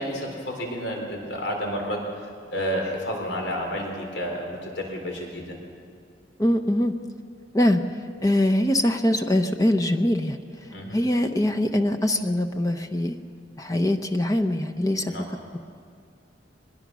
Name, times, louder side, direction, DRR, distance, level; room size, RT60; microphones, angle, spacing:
voice 1, 0.0-2.1 2.5-5.6 10.7-11.0 15.1-15.2, equal, 80° left, 1 dB, 3.9 m, -30 dB
voice 2, 6.4-6.9 7.5-10.4 10.9-13.2 13.6-15.1, left 1 dB, 20° left, 6 dB, 0.8 m, -23 dB
23.0 x 20.5 x 6.2 m, 2.3 s
head